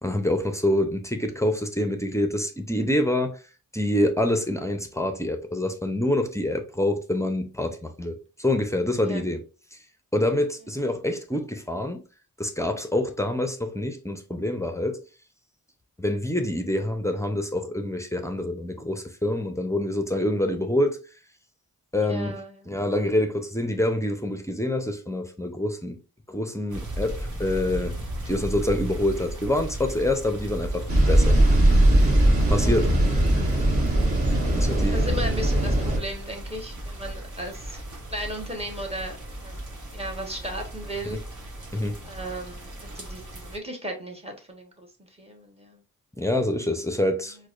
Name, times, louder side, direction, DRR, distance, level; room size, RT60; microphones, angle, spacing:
voice 1, 0.0-3.4 3.7-9.4 10.1-12.0 12.4-15.0 16.0-21.0 21.9-22.4 22.7-26.0 26.3-28.0 28.3-31.4 32.5-32.9 34.6-35.0 41.1-41.2 41.7-42.0 46.2-47.4, left 1 dB, 10° left, 0.5 m, -26 dB
voice 2, 22.0-22.7 32.6-32.8 34.5-37.8 38.1-39.2 39.4-39.6 39.9-41.2 42.1-44.9 45.2-45.8, equal, 15° right, 1.0 m, -36 dB
sound 1, 26.7-43.6, right 1 dB, 55° right, 1.1 m, -36 dB
sound 2, 30.9-36.0, right 1 dB, 40° right, 1.3 m, -20 dB
4.6 x 2.2 x 2.4 m
cardioid pair, 70°, 36 cm